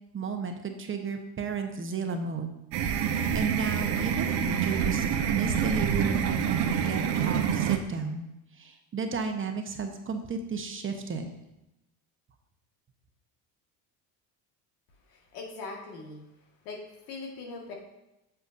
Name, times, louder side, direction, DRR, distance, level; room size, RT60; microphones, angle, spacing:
voice 1, 0.1-2.5 3.0-5.1 5.3-8.3 8.6-11.3, right 5 dB, 25° right, 5 dB, 1.0 m, -33 dB
sound 1, 2.7-7.8, right 8 dB, 70° right, 0.9 m, -27 dB
voice 2, 15.1-16.2 16.6-17.7, left 3 dB, 90° left, 0 dB, 1.8 m, -41 dB
8.2 x 6.7 x 2.6 m, 0.93 s
supercardioid pair, 90°, 45 cm